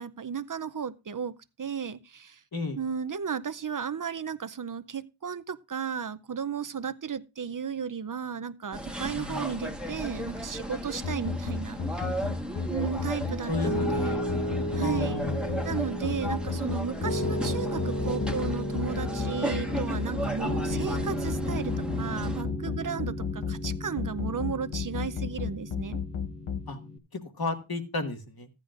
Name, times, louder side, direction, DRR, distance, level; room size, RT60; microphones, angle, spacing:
voice 1, 0.0-2.4 2.8-12.1 12.7-14.3 14.7-15.2 15.6-26.0, right 7 dB, 40° right, 0.6 m, -34 dB
sound 1, 8.7-22.4, equal, ahead, 1.3 m, -36 dB
voice 2, 9.2-9.5 13.5-14.0 14.8-15.4 26.7-26.8 27.1-28.5, left 3 dB, 45° left, 1.8 m, -33 dB
sound 2, 11.0-26.6, left 6 dB, 75° left, 1.0 m, -32 dB
Piano, 13.6-27.0, equal, 30° left, 1.3 m, -34 dB
14.5 x 10.5 x 2.5 m
wide cardioid pair, 55°, 49 cm